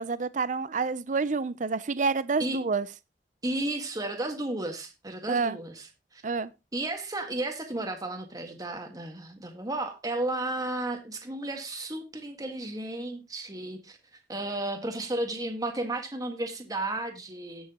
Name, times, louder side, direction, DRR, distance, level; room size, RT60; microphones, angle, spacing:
voice 1, 0.0-2.9 5.3-5.6 6.2-6.5, right 4 dB, 45° right, 0.5 m, -28 dB
voice 2, 3.4-5.9 6.1-6.2 6.7-14.0 14.3-17.7, right 2 dB, 20° right, 1.6 m, -33 dB
18.0 x 6.4 x 2.9 m
head